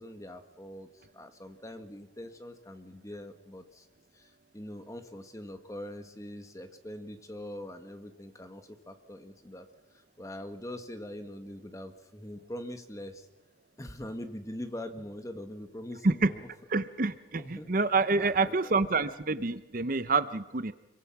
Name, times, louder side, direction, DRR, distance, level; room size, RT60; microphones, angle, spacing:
voice 1, 0.0-3.9 4.1-9.7 10.2-13.3 13.8-16.5 17.4-17.7 18.2-18.8, left 1 dB, 15° left, 8 dB, 1.5 m, -43 dB
voice 2, 16.7-20.7, right 3 dB, 45° right, 13 dB, 0.7 m, -27 dB
25.5 x 23.0 x 6.0 m, 1.0 s
head